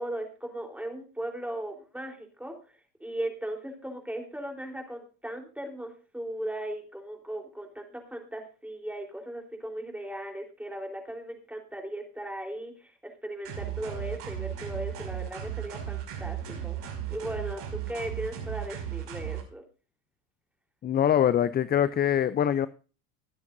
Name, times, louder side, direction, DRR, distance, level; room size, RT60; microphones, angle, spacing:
voice 1, 0.0-16.8 17.1-19.6, right 1 dB, 5° right, 3.8 m, -37 dB
sound 1, 13.4-19.4, right 10 dB, 60° right, 6.0 m, -36 dB
voice 2, 20.8-22.7, left 9 dB, 20° left, 0.5 m, -23 dB
21.0 x 9.5 x 2.7 m
hypercardioid pair, 85°, 46 cm